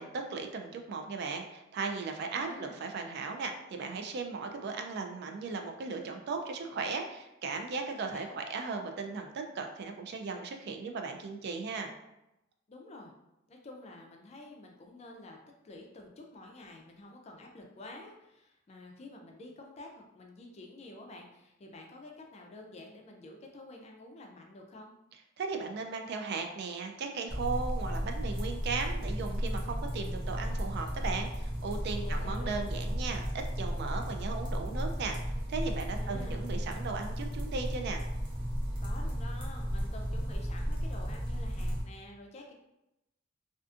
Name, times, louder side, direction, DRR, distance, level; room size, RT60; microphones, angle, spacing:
voice 1, 0.0-11.9 25.4-33.2 33.6-35.2 35.5-38.0, right 4 dB, 55° right, 4 dB, 0.3 m, -37 dB
voice 2, 2.3-2.8 7.9-8.4 12.7-13.1 13.5-15.4 15.6-24.9 32.0-32.6 36.0-36.4 38.8-42.5, left 2 dB, 35° left, 1 dB, 0.4 m, -49 dB
sound 1, 27.3-41.8, equal, 25° right, 0.7 m, -34 dB
2.4 x 2.4 x 2.4 m, 0.89 s
head